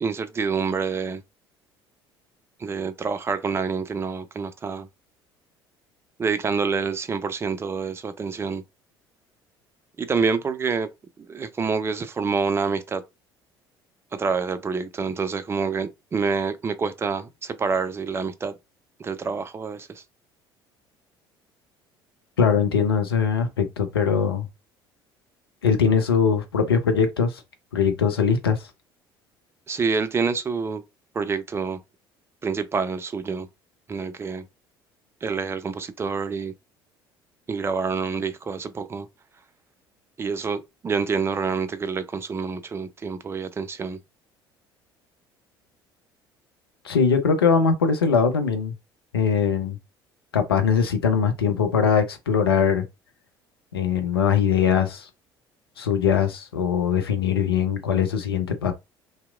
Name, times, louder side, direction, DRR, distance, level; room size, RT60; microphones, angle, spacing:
voice 1, 0.0-1.2 2.6-4.9 6.2-8.6 10.0-10.9 11.2-13.0 14.1-18.5 19.0-20.0 29.7-30.8 31.1-31.8 32.4-33.5 33.9-34.4 35.2-36.5 37.5-39.1 40.2-44.0, right 5 dB, 20° right, 0.4 m, -27 dB
voice 2, 22.4-24.5 25.6-27.3 27.7-28.6 46.8-48.7 49.1-49.8 50.3-52.8 53.7-55.1 55.8-58.7, left 6 dB, 80° left, 0.4 m, -21 dB
2.8 x 2.0 x 2.2 m
figure-of-eight pair, 60°, 13 cm